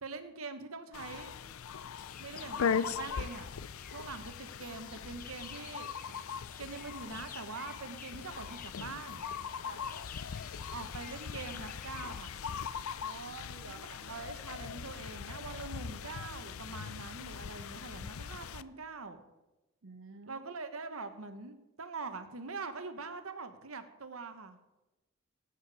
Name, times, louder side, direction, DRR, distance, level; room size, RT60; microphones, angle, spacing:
voice 1, 0.0-1.3 2.2-3.5 3.9-5.9 6.6-9.2 10.7-12.3 13.7-19.2 20.3-24.6, right 4 dB, 85° right, 9 dB, 1.3 m, -44 dB
sound 1, 0.9-18.6, left 7 dB, 85° left, 0.5 m, -40 dB
sound 2, 2.0-13.0, left 6 dB, 40° left, 0.9 m, -51 dB
voice 2, 9.6-10.0 13.0-14.0 19.8-20.4, right 4 dB, 60° right, 7 dB, 0.6 m, -49 dB
18.0 x 8.8 x 4.9 m, 1.1 s
head